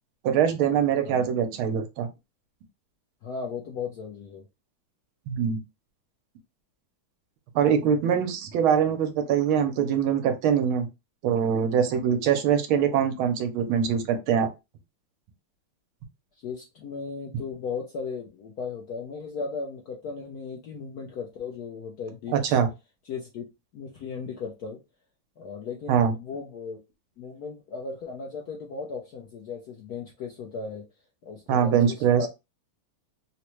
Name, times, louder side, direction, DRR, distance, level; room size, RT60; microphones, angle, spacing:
voice 1, 0.2-2.1 5.3-5.6 7.5-10.9 11.2-14.5 22.3-22.7 25.9-26.1 31.5-32.2, right 8 dB, 75° right, 1.5 m, -23 dB
voice 2, 3.2-4.4 16.4-22.3 23.0-23.5 23.7-24.8 25.4-26.8 27.2-30.9 31.2-32.3, left 5 dB, 70° left, 0.9 m, -36 dB
3.9 x 2.1 x 3.0 m
omnidirectional pair, 2.4 m